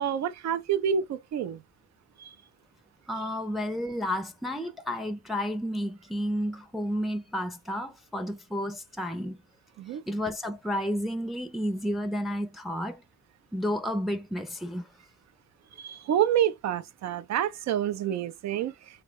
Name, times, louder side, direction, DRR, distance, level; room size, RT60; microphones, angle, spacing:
voice 1, 0.0-1.6 2.2-2.3 9.8-10.0 15.8-18.7, right 9 dB, 65° right, 0.6 m, -28 dB
voice 2, 3.1-9.4 10.1-13.0 13.5-14.9, equal, ahead, 0.6 m, -31 dB
3.2 x 2.4 x 3.4 m
cardioid pair, 90°, 30 cm